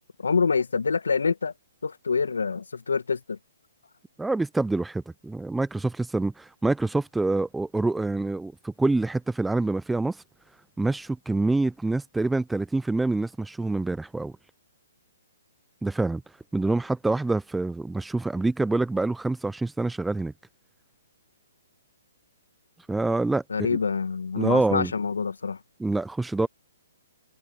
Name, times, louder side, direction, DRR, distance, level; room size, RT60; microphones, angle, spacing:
voice 1, 0.2-1.5 1.8-3.4 23.5-25.6, left 5 dB, 75° left, 1.6 m, -26 dB
voice 2, 4.2-10.2 10.8-14.3 15.8-16.2 16.5-20.3 22.9-23.8 24.4-24.9 25.8-26.5, right 2 dB, 5° right, 0.6 m, -26 dB
figure-of-eight pair, 130°, 0 cm